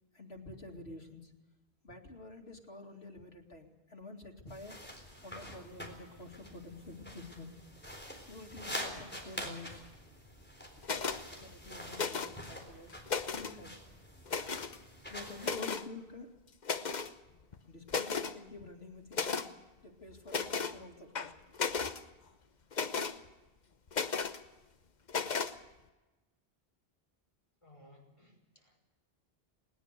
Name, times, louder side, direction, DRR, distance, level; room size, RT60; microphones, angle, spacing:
voice 1, 0.1-1.3 1.8-4.8 5.2-7.5 8.3-9.8 10.7-12.9 13.4-13.7 15.1-16.3 17.6-19.5 19.8-21.3, left 2 dB, 80° left, 3 dB, 2.7 m, -49 dB
sound 1, 4.5-15.6, equal, 10° left, 3.8 m, -46 dB
sound 2, 10.8-11.2 11.9-12.5 12.9-13.6 14.3-14.8 15.4-15.9 16.6-17.1 17.5-17.6 17.9-18.3 19.1-19.5 20.3-20.8 21.1-22.0 22.7-23.2 23.9-24.4 25.1-25.5, left 5 dB, 45° left, 1.0 m, -34 dB
voice 2, 27.6-28.8, left 1 dB, 30° left, 0 dB, 5.9 m, -60 dB
20.0 x 20.0 x 6.7 m, 1.1 s
omnidirectional pair, 1.0 m